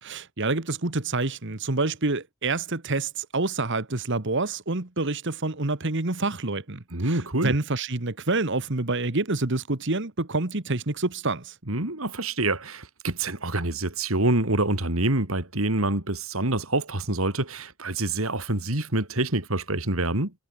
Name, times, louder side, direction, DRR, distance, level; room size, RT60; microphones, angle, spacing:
voice 1, 0.0-11.5, right 3 dB, 55° right, 1.7 m, -27 dB
voice 2, 6.9-7.6 11.7-20.3, right 2 dB, 75° right, 3.6 m, -26 dB
head